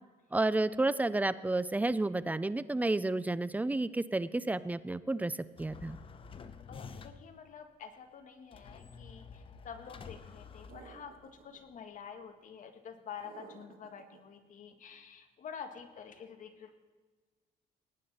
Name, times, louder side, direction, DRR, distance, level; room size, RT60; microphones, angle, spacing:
voice 1, 0.3-5.3 5.6-6.0, right 2 dB, 10° right, 16 dB, 0.5 m, -31 dB
sound 1, 5.6-7.4 8.5-11.4, left 5 dB, 30° left, 0.8 m, -49 dB
voice 2, 6.7-16.7, left 7 dB, 50° left, 6 dB, 1.6 m, -48 dB
sound 2, 10.7-11.6 13.2-14.2, right 7 dB, 60° right, 1.5 m, -54 dB
19.0 x 9.4 x 4.3 m, 1.4 s
cardioid pair, 110°, 17 cm